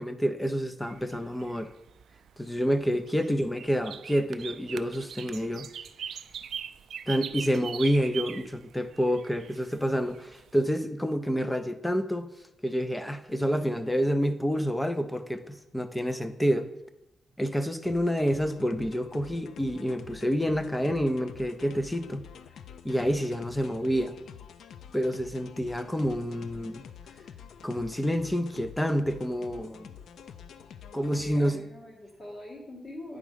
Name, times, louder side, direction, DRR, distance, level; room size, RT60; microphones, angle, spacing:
voice 1, 0.0-1.7 2.4-5.7 7.1-12.3 12.6-16.7 17.4-22.2 22.8-24.2 24.9-26.8 27.6-29.9 30.9-31.6, equal, 5° left, 10 dB, 0.4 m, -28 dB
sound 1, 0.8-10.6, right 8 dB, 70° right, 0.3 m, -41 dB
sound 2, 17.8-31.6, left 8 dB, 80° left, 0.4 m, -48 dB
voice 2, 30.9-33.2, left 1 dB, 40° left, -3 dB, 2.3 m, -43 dB
9.2 x 3.7 x 5.0 m, 0.87 s
wide cardioid pair, 165°, 0 cm